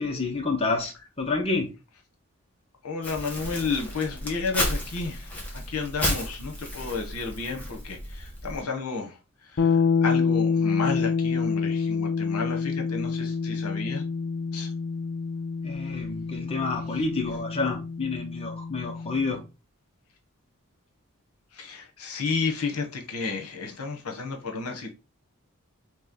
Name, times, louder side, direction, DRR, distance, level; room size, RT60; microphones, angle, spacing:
voice 1, 0.0-1.7 15.6-19.4, left 3 dB, 25° left, 0.8 m, -29 dB
voice 2, 2.8-9.2 9.4-14.0 14.5-14.7 21.5-24.9, left 4 dB, 80° left, 1.0 m, -32 dB
Crumpling crinkling, 3.0-8.6, equal, 5° left, 1.2 m, -33 dB
sound 1, 9.6-19.3, left 5 dB, 55° left, 0.5 m, -27 dB
3.2 x 3.1 x 3.8 m
head